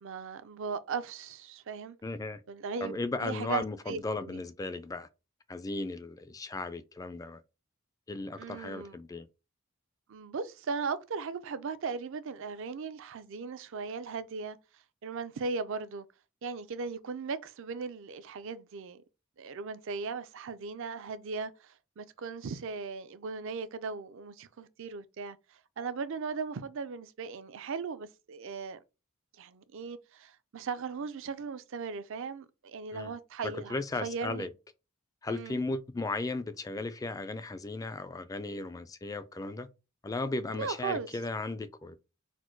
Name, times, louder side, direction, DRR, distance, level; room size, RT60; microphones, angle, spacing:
voice 1, 0.0-2.0 2.5-2.9 3.2-4.4 8.4-9.0 10.1-14.6 15.0-16.1 16.4-19.0 19.4-28.8 29.4-34.5 35.3-35.6 40.5-41.1, right 5 dB, 60° right, 0.4 m, -38 dB
voice 2, 2.0-2.4 2.8-5.1 5.5-7.4 8.1-9.3 32.9-33.1 33.7-34.5 35.2-39.7 40.0-42.0, left 3 dB, 15° left, 0.3 m, -36 dB
4.2 x 2.1 x 4.5 m
head